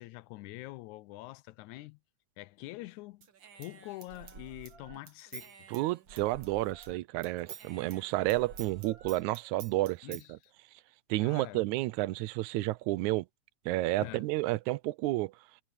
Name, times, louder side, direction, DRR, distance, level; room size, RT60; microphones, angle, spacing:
voice 1, 0.0-2.0 2.4-3.3 3.5-5.6 10.0-10.3 11.2-11.6 14.0-14.2, left 19 dB, 85° left, 2.0 m, -45 dB
Human voice / Scissors, 3.2-7.0 7.2-10.3, right 6 dB, 45° right, 2.0 m, -49 dB
voice 2, 5.7-10.4 11.1-13.3 13.7-15.3, right 18 dB, 85° right, 2.0 m, -31 dB
omnidirectional pair, 3.3 m